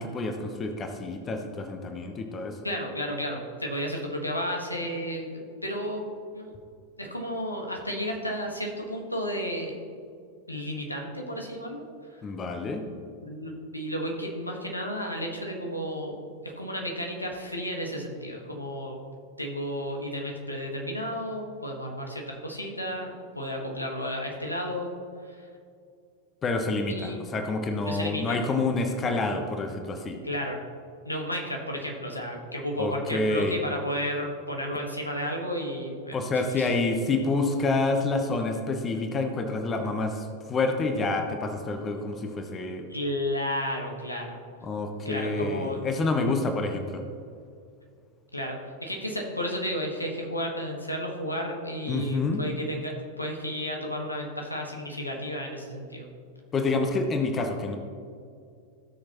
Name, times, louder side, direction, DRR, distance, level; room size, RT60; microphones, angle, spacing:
voice 1, 0.0-2.6 12.2-12.8 26.4-30.2 32.8-33.6 36.1-42.8 44.6-47.0 51.9-52.4 56.5-57.8, left 3 dB, 25° left, 5 dB, 1.0 m, -28 dB
voice 2, 2.6-6.5 7.0-9.8 10.5-11.8 13.2-16.2 16.5-19.0 19.4-24.9 25.2-25.5 26.9-27.2 27.8-28.4 30.2-30.6 31.0-36.7 42.9-44.4 45.0-46.1 48.3-56.1, equal, 85° left, 0 dB, 1.6 m, -33 dB
16.5 x 6.6 x 3.1 m, 2.3 s
figure-of-eight pair, 90°, 0 cm